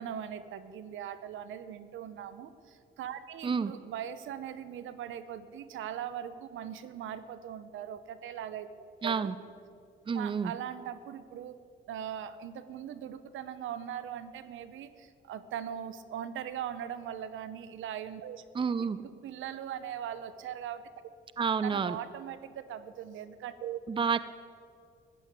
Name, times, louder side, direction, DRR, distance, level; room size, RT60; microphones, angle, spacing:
voice 1, 0.0-8.7 9.0-9.3 10.1-11.6 11.9-18.4 18.8-20.8 21.6-23.8, right 9 dB, 80° right, 13 dB, 0.9 m, -40 dB
voice 2, 9.0-9.4 10.1-10.5 18.5-19.0 21.4-22.0 23.9-24.2, right 6 dB, 25° right, 14 dB, 0.6 m, -29 dB
15.0 x 10.5 x 8.3 m, 2.3 s
cardioid pair, 90°, 20 cm